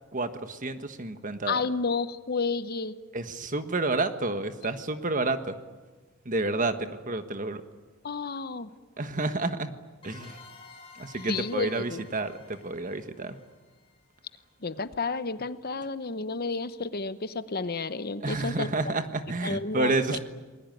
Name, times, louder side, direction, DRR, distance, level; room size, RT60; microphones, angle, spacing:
voice 1, 0.1-1.6 3.1-5.6 6.2-7.6 9.0-9.7 10.0-10.4 10.9-13.4 18.2-20.2, right 2 dB, 35° right, 9 dB, 1.4 m, -30 dB
voice 2, 1.5-2.9 8.0-8.7 11.3-12.0 14.6-18.7 19.4-20.2, left 4 dB, 45° left, 13 dB, 0.9 m, -31 dB
sound 1, 10.0-14.5, left 4 dB, 25° left, 5.8 m, -52 dB
28.5 x 20.5 x 9.3 m, 1.3 s
head